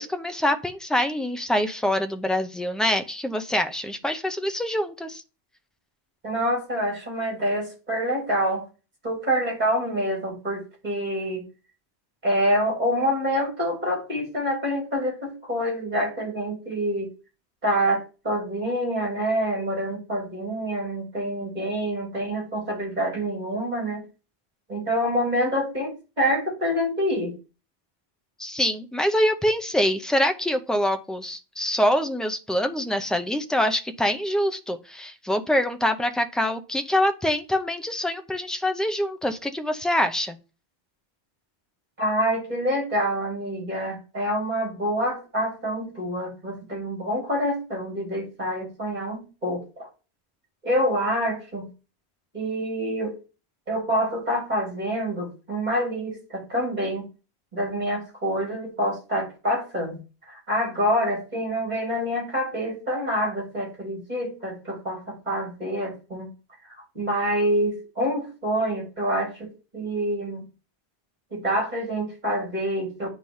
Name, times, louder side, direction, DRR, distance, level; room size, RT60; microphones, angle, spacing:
voice 1, 0.0-5.2 28.4-40.4, left 1 dB, ahead, 7 dB, 0.3 m, -25 dB
voice 2, 6.2-8.7 9.0-11.4 12.2-17.1 17.6-24.0 24.7-27.3 42.0-49.9 50.6-51.7 52.3-53.2 53.7-57.1 57.5-60.0 60.3-66.3 66.9-70.4 71.3-73.1, equal, 40° right, -2 dB, 3.7 m, -26 dB
9.1 x 3.2 x 5.5 m, 0.32 s
omnidirectional pair, 1.1 m